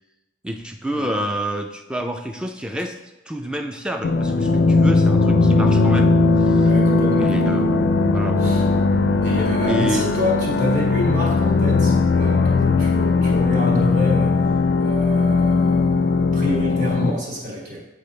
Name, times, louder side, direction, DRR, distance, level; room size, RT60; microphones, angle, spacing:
voice 1, 0.4-3.0 3.3-6.7 7.2-8.4 9.6-10.1, equal, 5° right, 4 dB, 0.4 m, -28 dB
sound 1, 4.0-17.1, left 3 dB, 85° left, 0.4 m, -18 dB
voice 2, 6.6-7.7 8.4-8.6 9.2-14.4 14.8-17.8, left 1 dB, 45° right, -3 dB, 1.6 m, -28 dB
8.5 x 4.4 x 3.3 m, 0.99 s
head